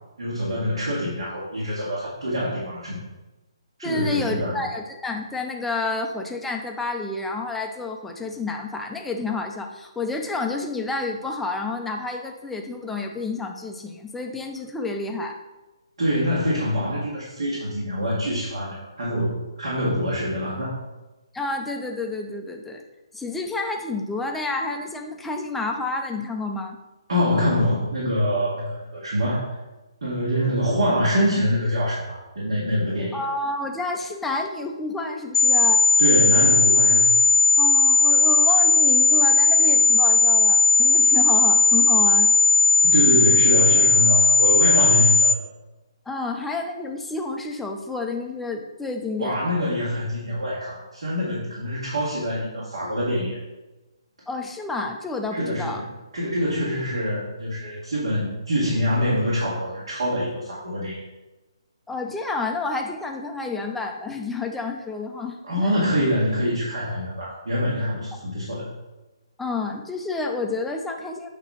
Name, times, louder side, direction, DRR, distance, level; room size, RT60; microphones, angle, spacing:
voice 1, 0.2-3.0 3.8-4.6 16.0-20.7 27.1-29.5 30.0-33.2 36.0-37.2 42.8-45.3 49.2-53.4 55.3-61.0 65.4-68.7, equal, 70° right, -6 dB, 2.2 m, -25 dB
voice 2, 3.8-15.4 21.3-22.8 23.1-26.8 33.1-35.9 37.6-42.3 46.1-49.4 54.3-55.8 61.9-65.7 69.4-71.3, left 3 dB, 5° left, 2 dB, 0.6 m, -30 dB
sound 1, 35.3-45.3, left 3 dB, 70° left, 0.3 m, -17 dB
8.5 x 3.0 x 5.5 m, 1.1 s
hypercardioid pair, 150°, 3 cm